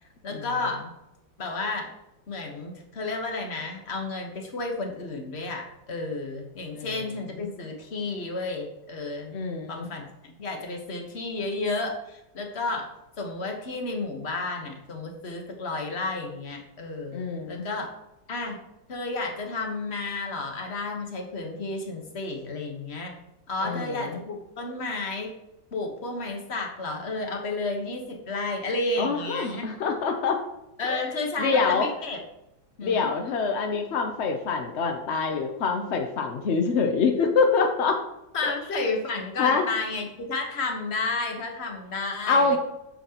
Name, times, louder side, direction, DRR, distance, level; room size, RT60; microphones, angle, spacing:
voice 1, 0.2-0.8 1.4-1.9 2.3-9.3 9.7-12.9 13.2-17.2 17.5-17.9 18.3-18.6 18.9-23.1 23.5-25.3 25.7-29.7 30.8-32.2 32.8-33.1 38.3-42.6, left 3 dB, 40° left, 3 dB, 1.2 m, -32 dB
voice 2, 9.3-9.9 17.1-17.7 23.6-24.2 29.0-30.4 30.8-31.0 31.4-31.9 32.8-38.0 39.4-39.7 42.3-42.6, left 4 dB, 70° left, 4 dB, 0.6 m, -25 dB
8.4 x 7.3 x 2.9 m, 0.89 s
omnidirectional pair, 2.1 m